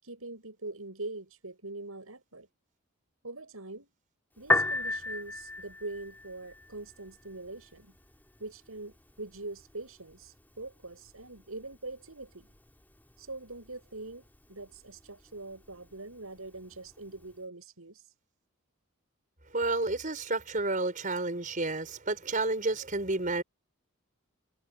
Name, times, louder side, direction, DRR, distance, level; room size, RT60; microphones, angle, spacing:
voice 1, 0.0-2.5 3.2-3.9 4.4-7.9 8.4-12.5 13.2-18.1, right 2 dB, 80° right, 7.4 m, -43 dB
Piano, 4.4-17.4, left 2 dB, 10° left, 3.6 m, -38 dB
voice 2, 19.5-23.4, right 2 dB, 35° right, 5.2 m, -30 dB
head